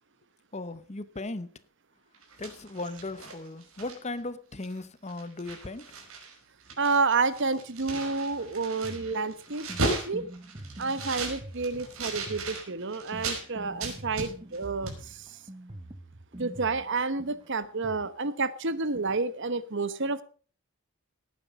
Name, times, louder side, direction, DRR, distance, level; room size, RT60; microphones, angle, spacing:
voice 1, 0.5-1.5 2.4-6.0 13.4-13.5, left 2 dB, 30° left, 0.9 m, -37 dB
sound 1, 2.1-4.2 4.6-4.8 5.1-6.3 6.6-13.4 13.8-14.6 14.9-15.0, right 2 dB, 70° right, 5.2 m, -36 dB
voice 2, 6.8-10.3 10.8-15.4 16.4-20.2, right 4 dB, 55° right, 1.1 m, -30 dB
sound 2, 8.3-18.1, right 1 dB, 25° right, 0.9 m, -45 dB
18.0 x 9.5 x 5.3 m
head